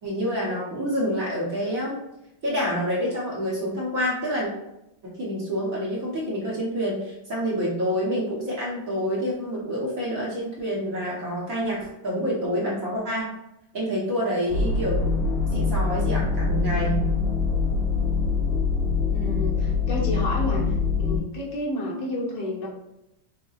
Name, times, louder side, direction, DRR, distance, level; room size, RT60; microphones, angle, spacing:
voice 1, 0.0-1.9 2.4-4.5 5.2-13.3 13.7-15.1 15.5-17.1, equal, 50° right, -5 dB, 1.3 m, -27 dB
sound 1, 14.5-21.2, left 4 dB, 45° left, 0.8 m, -24 dB
voice 2, 19.1-22.7, left 1 dB, 65° left, -4 dB, 1.6 m, -30 dB
6.5 x 2.2 x 2.4 m, 0.88 s
omnidirectional pair, 2.1 m